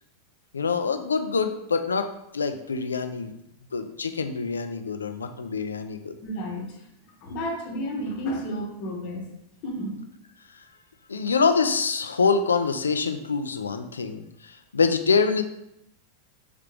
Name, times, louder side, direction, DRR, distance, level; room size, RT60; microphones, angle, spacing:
voice 1, 0.5-3.3 3.7-6.1 11.1-15.4, left 5 dB, 70° left, 8 dB, 0.3 m, -25 dB
voice 2, 6.2-6.9 7.2-9.2 9.6-10.0, equal, 45° left, 1 dB, 0.9 m, -31 dB
3.7 x 3.4 x 3.2 m, 0.83 s
figure-of-eight pair, 90°, 0 cm